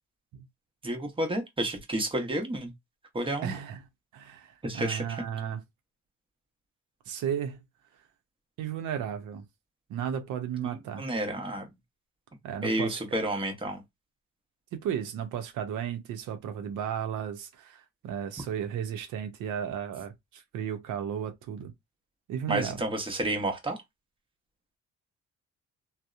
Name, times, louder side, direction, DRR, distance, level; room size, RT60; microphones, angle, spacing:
voice 1, 0.8-2.7 3.1-3.5 4.6-5.2 10.6-11.7 12.6-13.8 22.5-23.8, right 1 dB, 15° right, 0.8 m, -31 dB
voice 2, 3.4-3.8 4.1-5.6 7.1-7.6 8.6-9.4 9.9-11.0 12.4-13.0 14.7-21.7 22.3-22.8, right 9 dB, 80° right, 0.6 m, -34 dB
2.7 x 2.0 x 2.3 m
cardioid pair, 90°, 30 cm